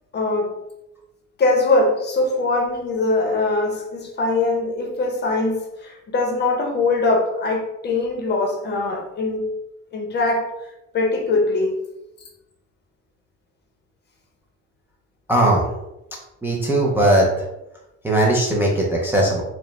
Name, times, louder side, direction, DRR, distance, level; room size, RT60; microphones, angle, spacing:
voice 1, 0.1-0.6 1.4-9.5 9.9-10.5 10.9-11.7, left 2 dB, 35° left, 2 dB, 0.7 m, -22 dB
voice 2, 15.3-15.7 16.4-17.4 18.0-19.4, right 1 dB, 5° right, -3 dB, 0.4 m, -18 dB
4.8 x 2.1 x 3.2 m, 0.93 s
cardioid pair, 160°, 29 cm